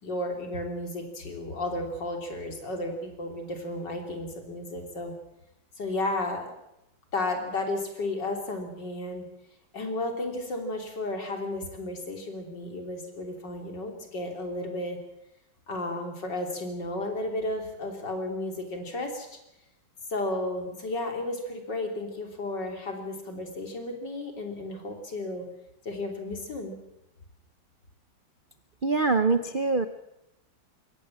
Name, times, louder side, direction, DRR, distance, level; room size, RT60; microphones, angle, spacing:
voice 1, 0.0-5.1 5.8-6.5 7.1-9.3 9.7-15.0 15.7-19.4 20.1-25.5 25.8-26.8, left 2 dB, 60° left, 4 dB, 3.9 m, -33 dB
voice 2, 28.8-29.9, right 3 dB, 90° right, 10 dB, 0.4 m, -24 dB
22.0 x 17.5 x 7.5 m, 0.86 s
omnidirectional pair, 2.2 m